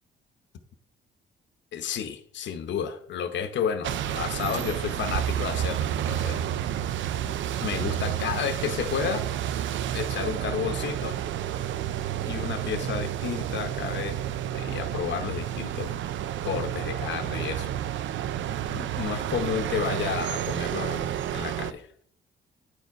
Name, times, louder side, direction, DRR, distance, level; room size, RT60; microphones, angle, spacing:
voice 1, 1.7-6.4 7.2-7.3 7.6-9.3 9.9-11.2 12.3-14.2 14.5-15.9 16.4-17.9 18.6-21.9, left 8 dB, 65° left, 0.8 m, -31 dB
sound 1, 3.8-21.7, right 11 dB, 70° right, 0.5 m, -30 dB
9.7 x 4.6 x 4.7 m
cardioid pair, 90°, 20 cm